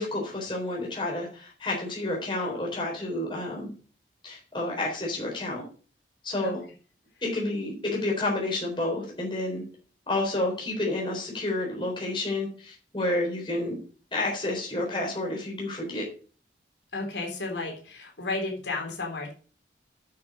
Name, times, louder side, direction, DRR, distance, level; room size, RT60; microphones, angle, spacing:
voice 1, 0.0-3.7 4.2-5.6 6.2-6.6 7.2-9.6 10.1-13.8 14.1-16.0, left 2 dB, 25° left, -1 dB, 3.9 m, -30 dB
voice 2, 16.9-19.3, left 3 dB, 75° left, 0 dB, 3.7 m, -33 dB
9.6 x 6.1 x 6.3 m, 0.39 s
head